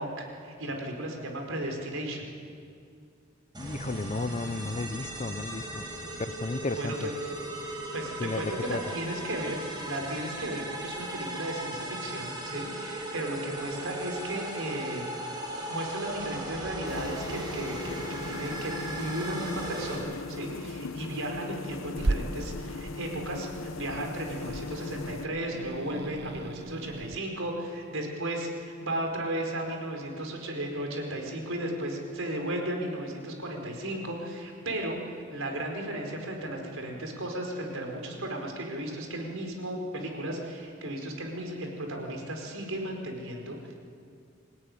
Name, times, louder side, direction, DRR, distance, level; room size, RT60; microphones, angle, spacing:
voice 1, 0.0-2.3 6.7-7.1 7.9-15.3 15.7-43.7, right 1 dB, 75° right, 2 dB, 5.0 m, -35 dB
sound 1, 3.5-20.0, right 1 dB, 20° right, 7.2 m, -37 dB
voice 2, 3.6-5.9 6.2-7.1 8.2-8.8, left 2 dB, 35° left, 14 dB, 0.6 m, -33 dB
sound 2, 16.9-25.3, left 3 dB, 70° left, 0.9 m, -39 dB
Growling / Hiss, 21.9-27.2, right 2 dB, 55° right, 0.8 m, -36 dB
26.5 x 18.0 x 9.9 m, 2.3 s
head